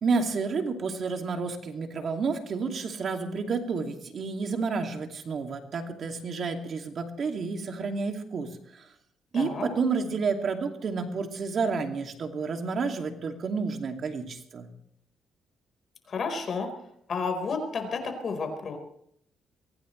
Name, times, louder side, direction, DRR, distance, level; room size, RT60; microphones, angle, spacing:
voice 1, 0.0-8.9 9.3-14.7, right 4 dB, 55° right, 4 dB, 2.6 m, -30 dB
voice 2, 9.3-9.7 16.1-16.7 17.1-18.8, left 4 dB, 50° left, 5 dB, 4.6 m, -31 dB
23.5 x 16.5 x 3.3 m, 0.70 s
cardioid pair, 90°, 0 cm